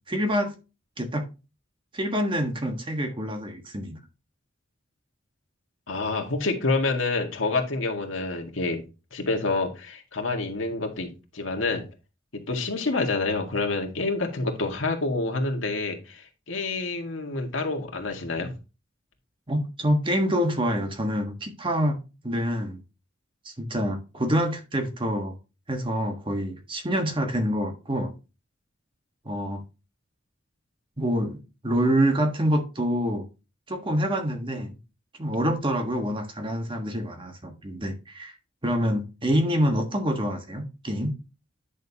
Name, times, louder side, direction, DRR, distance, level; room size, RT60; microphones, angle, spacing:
voice 1, 0.1-0.6 1.0-1.3 1.9-4.0 19.5-22.0 22.2-22.8 23.4-25.4 25.7-28.1 29.2-29.6 31.0-33.3 33.7-34.8 35.2-38.3 38.6-41.1, equal, 25° right, 1.4 m, -26 dB
voice 2, 5.9-8.8 9.1-11.8 12.3-18.5, left 3 dB, 85° left, 2.0 m, -28 dB
10.5 x 6.4 x 2.9 m
head